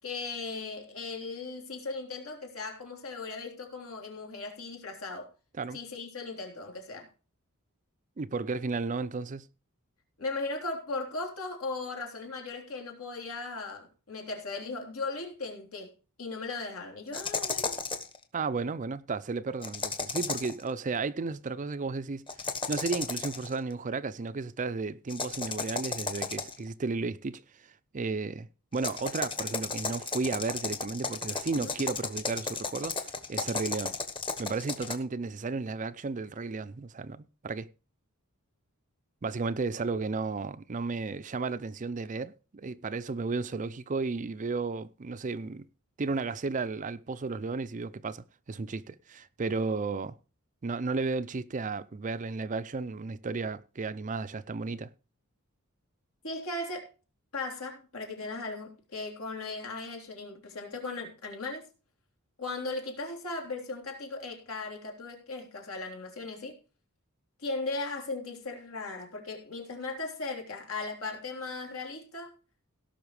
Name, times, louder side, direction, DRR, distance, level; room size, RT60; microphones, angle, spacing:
voice 1, 0.0-5.3 5.7-7.1 10.2-15.9 16.2-17.8 31.6-31.7 56.2-56.9 57.3-61.7 62.4-66.5 67.4-72.3, left 3 dB, 75° left, 3.6 m, -37 dB
voice 2, 8.2-9.5 18.3-22.3 22.7-27.4 27.9-28.5 28.7-34.0 34.4-37.7 39.2-45.7 46.0-50.2 50.6-54.9, right 4 dB, 35° right, 0.5 m, -33 dB
sound 1, 17.1-18.2 19.6-20.6 22.3-23.5 25.1-26.7 28.7-34.9, left 4 dB, 25° left, 1.2 m, -34 dB
17.0 x 6.0 x 4.9 m
head